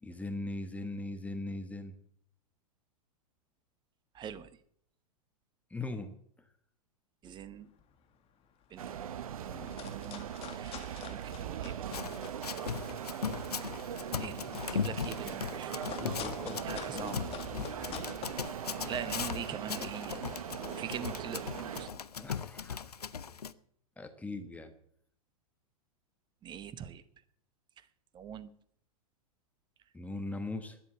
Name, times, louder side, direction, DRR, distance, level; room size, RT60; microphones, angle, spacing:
voice 1, 0.0-2.0 5.7-6.5 7.3-7.4 9.5-9.8 12.6-12.9 14.5-14.6 16.0-17.3 22.2-22.9 24.0-24.7 29.9-30.8, left 2 dB, 5° left, 8 dB, 1.1 m, -41 dB
voice 2, 4.1-4.5 7.2-7.7 8.7-9.0 9.4-12.1 14.2-15.9 16.6-17.3 18.9-20.2 20.6-22.0 26.4-27.0 28.1-28.5, right 8 dB, 25° right, 15 dB, 0.9 m, -43 dB
sound 1, 7.7-8.0 8.4-8.5 8.7-9.1 9.5-12.4 12.7-19.2, left 8 dB, 30° left, 1.8 m, -47 dB
sound 2, 8.8-21.9, right 9 dB, 65° right, 0.9 m, -40 dB
Run, 11.9-23.5, left 7 dB, 80° left, 0.6 m, -39 dB
12.5 x 10.0 x 7.4 m, 0.64 s
figure-of-eight pair, 100°, 19 cm